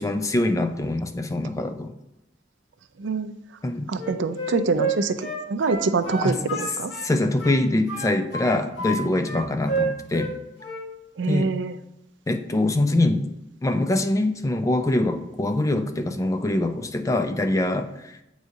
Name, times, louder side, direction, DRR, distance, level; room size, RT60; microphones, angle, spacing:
voice 1, 0.0-1.9 3.6-3.9 6.2-6.4 7.0-10.3 11.2-11.5 12.3-13.3 13.6-18.2, left 2 dB, 20° left, 8 dB, 0.4 m, -24 dB
voice 2, 3.0-3.3 3.9-6.9 11.2-11.8, right 4 dB, 75° right, 10 dB, 0.4 m, -25 dB
Wind instrument woodwind instrument, 3.9-7.1 7.4-9.0 9.2-10.3 10.6-10.9, right 2 dB, 70° left, 1.5 m, -29 dB
7.9 x 4.7 x 2.7 m, 0.88 s
head